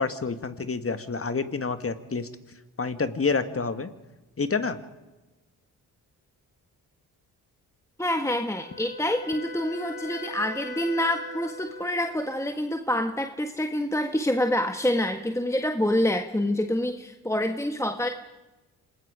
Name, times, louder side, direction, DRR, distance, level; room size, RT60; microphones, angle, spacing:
voice 1, 0.0-2.3 2.8-3.9 4.4-4.8, left 4 dB, 35° left, 10 dB, 1.9 m, -28 dB
voice 2, 8.0-18.1, left 1 dB, 5° left, 5 dB, 1.6 m, -27 dB
Wind instrument woodwind instrument, 8.6-12.6, left 4 dB, 55° left, 4.4 m, -41 dB
27.0 x 19.5 x 5.1 m, 1.1 s
supercardioid pair, 55°, 41 cm